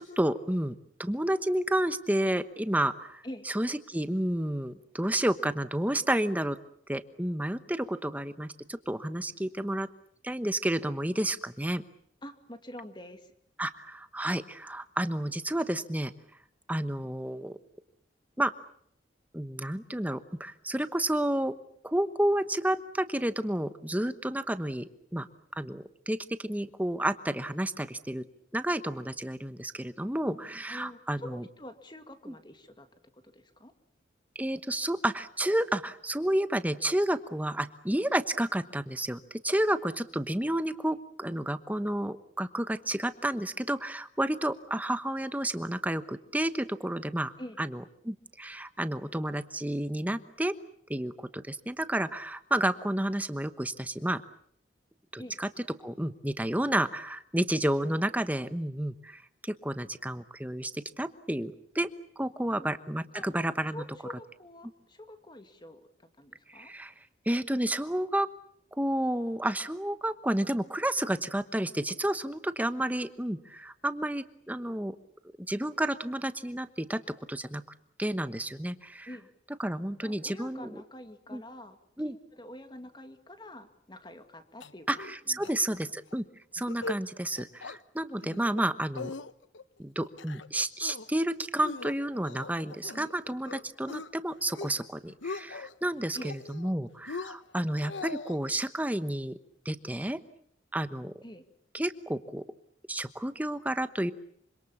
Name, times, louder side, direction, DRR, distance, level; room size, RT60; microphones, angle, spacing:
voice 1, 0.0-6.6 6.9-9.9 10.2-11.8 13.6-16.1 16.7-17.6 18.4-18.5 19.3-21.5 21.8-25.3 25.5-28.2 28.5-31.4 32.3-32.4 34.3-50.5 50.9-54.2 55.1-55.5 55.8-61.9 62.2-63.8 66.5-66.9 67.3-68.3 68.8-75.0 75.5-77.6 78.0-79.1 79.6-80.7 81.3-81.4 82.0-82.2 84.9-86.2 86.5-89.1 89.8-99.4 99.6-100.2 100.7-101.1 101.7-102.4 102.9-104.1, right 1 dB, 10° right, 12 dB, 1.0 m, -31 dB
voice 2, 12.2-13.3 30.7-32.9 33.1-33.7 47.4-47.6 55.2-55.4 62.5-62.7 63.1-63.3 63.7-66.7 79.1-79.3 80.0-81.8 82.0-84.9 85.3-85.4 85.7-85.8 96.1-96.3 101.2-101.4, left 1 dB, 25° left, 8 dB, 2.2 m, -46 dB
sound 1, 84.6-85.2 85.4-85.5 85.9-86.1 86.6-87.0 87.3-87.8 88.2-88.6 88.9-89.6 90.0-90.5 90.8-91.2 91.6-93.1 93.5-94.1 94.4-94.8 95.1-95.7 96.2-96.7 97.1-98.4, left 3 dB, 85° left, 1.0 m, -40 dB
26.5 x 25.5 x 7.2 m, 0.66 s
head